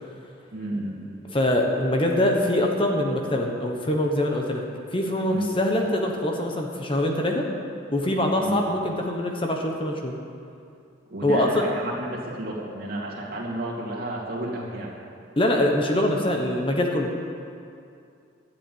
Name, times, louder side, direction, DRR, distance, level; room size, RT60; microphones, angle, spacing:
voice 1, 0.5-1.2 5.3-5.5 8.4-8.6 11.1-14.9, right 1 dB, 50° right, -4 dB, 2.5 m, -31 dB
voice 2, 1.3-4.6 4.9-7.5 7.9-10.1 11.2-11.5 15.4-17.1, left 1 dB, 25° left, 1 dB, 1.1 m, -24 dB
12.0 x 7.3 x 9.3 m, 2.5 s
head